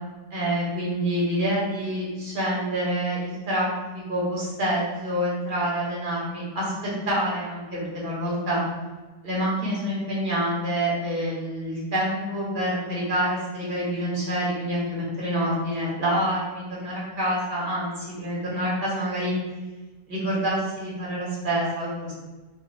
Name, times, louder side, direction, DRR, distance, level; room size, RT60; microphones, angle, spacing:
voice 1, 0.3-3.7 4.1-6.7 7.1-8.6 9.2-19.3 20.1-22.1, equal, 35° right, -7 dB, 1.1 m, -27 dB
3.5 x 2.6 x 3.1 m, 1.2 s
omnidirectional pair, 1.8 m